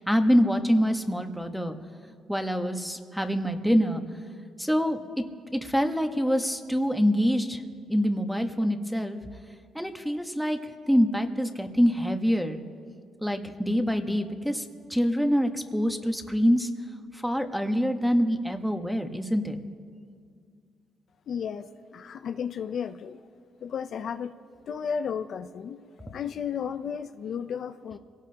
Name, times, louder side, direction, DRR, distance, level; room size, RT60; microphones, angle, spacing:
voice 1, 0.1-1.8 2.3-4.0 4.6-5.0 5.5-7.6 7.9-9.2 9.7-10.6 10.9-12.6 13.2-14.6 14.9-16.7 17.2-19.6, equal, ahead, 6 dB, 1.2 m, -25 dB
voice 2, 21.3-21.7 21.9-23.2 23.6-24.3 24.7-28.0, left 7 dB, 60° left, 9 dB, 0.6 m, -33 dB
26.5 x 17.5 x 2.9 m, 2.1 s
cardioid pair, 90°, 0 cm